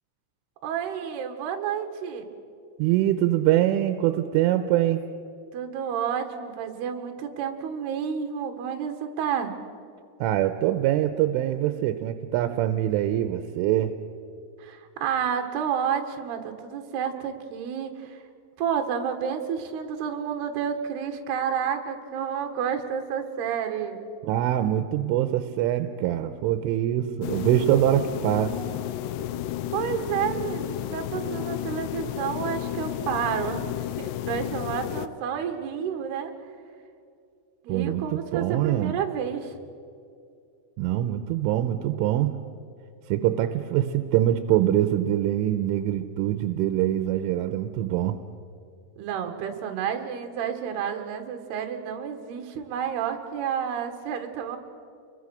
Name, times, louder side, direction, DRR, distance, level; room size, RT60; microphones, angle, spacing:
voice 1, 0.6-2.3 5.5-9.5 14.6-18.2 18.6-24.0 29.7-33.7 34.0-36.3 37.6-39.5 49.0-54.6, right 8 dB, 60° right, 5 dB, 3.4 m, -30 dB
voice 2, 2.8-5.0 10.2-13.9 24.2-28.6 37.7-39.0 40.8-42.4 43.1-48.2, right 12 dB, 85° right, 9 dB, 3.2 m, -24 dB
sound 1, 27.2-35.1, left 12 dB, 80° left, 2.4 m, -32 dB
28.5 x 22.5 x 6.5 m, 2.4 s
omnidirectional pair, 5.8 m